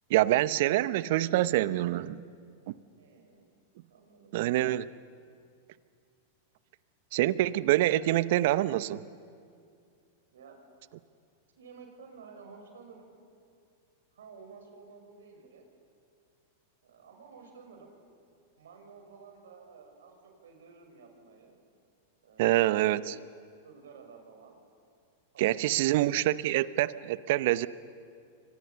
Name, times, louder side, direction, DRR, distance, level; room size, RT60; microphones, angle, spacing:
voice 1, 0.1-2.2 2.7-2.8 4.3-4.9 7.1-9.0 22.4-23.1 25.4-27.7, right 15 dB, 60° right, 17 dB, 0.8 m, -26 dB
voice 2, 3.0-3.4 3.9-4.3 10.3-10.6 11.6-13.1 14.1-15.6 16.8-18.0 18.6-21.6 22.2-23.0 23.6-24.7 25.3-26.2, right 5 dB, 75° right, 3 dB, 5.8 m, -52 dB
29.5 x 24.0 x 7.0 m, 2.3 s
hypercardioid pair, 100°, 0 cm